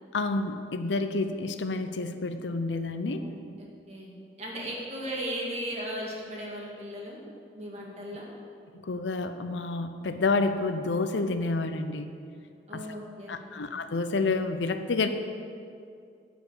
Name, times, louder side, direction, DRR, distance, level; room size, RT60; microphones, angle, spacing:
voice 1, 0.1-3.3 8.8-12.1 12.7-12.8 13.3-15.1, left 3 dB, 90° left, 9 dB, 0.6 m, -29 dB
voice 2, 3.2-4.1 4.4-7.3 7.5-8.3 12.7-13.7, equal, 35° right, -3 dB, 1.8 m, -37 dB
9.6 x 5.1 x 8.0 m, 2.4 s
head